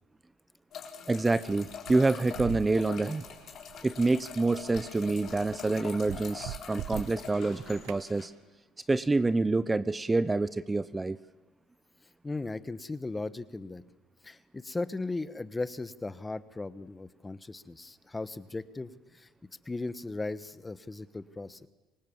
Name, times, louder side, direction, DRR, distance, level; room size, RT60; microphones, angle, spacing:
sound 1, 0.7-8.3, left 7 dB, 55° left, 3.9 m, -44 dB
voice 1, 1.1-3.2 3.8-8.3 8.9-11.2, right 3 dB, 20° right, 15 dB, 0.6 m, -27 dB
sound 2, 1.7-8.1, right 15 dB, 80° right, 0.6 m, -44 dB
voice 2, 12.2-13.8 14.2-19.3 19.6-21.7, left 3 dB, 20° left, 14 dB, 1.2 m, -37 dB
25.0 x 18.0 x 7.2 m, 1.2 s
supercardioid pair, 80°, 0 cm